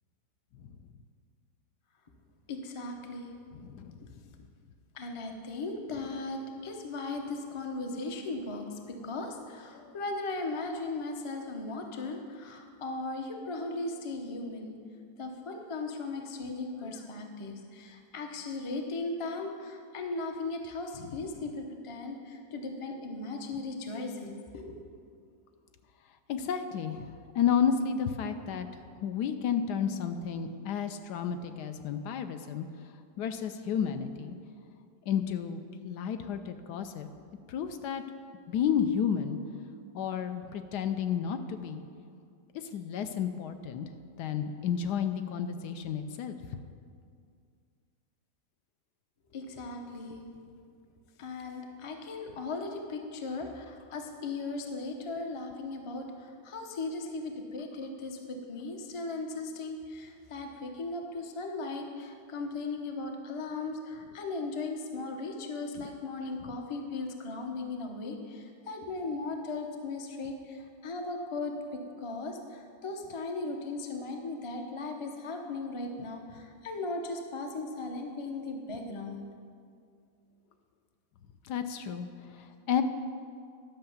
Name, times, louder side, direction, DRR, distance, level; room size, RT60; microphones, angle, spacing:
voice 1, 2.5-3.4 5.0-14.7 15.2-24.8 49.3-50.3 51.2-79.3, left 3 dB, 35° left, 3 dB, 0.4 m, -37 dB
voice 2, 3.5-4.0 9.8-9.9 26.3-28.7 29.0-32.7 33.2-34.3 35.1-37.1 37.5-38.0 38.5-39.4 39.9-41.8 42.7-43.9 44.2-46.4 65.8-65.9 81.4-82.1 82.3-82.8, left 8 dB, 75° left, 8 dB, 1.1 m, -31 dB
11.5 x 5.7 x 7.1 m, 2.3 s
omnidirectional pair, 1.9 m